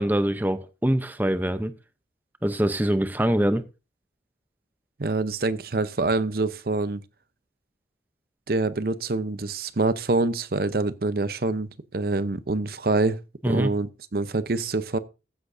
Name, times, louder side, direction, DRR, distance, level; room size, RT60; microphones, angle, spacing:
voice 1, 0.0-1.7 2.4-3.6 13.4-13.7, right 1 dB, 10° right, 0.6 m, -24 dB
voice 2, 5.0-7.0 8.5-13.2 13.4-15.0, right 3 dB, 55° right, 0.7 m, -26 dB
14.5 x 10.5 x 2.6 m
head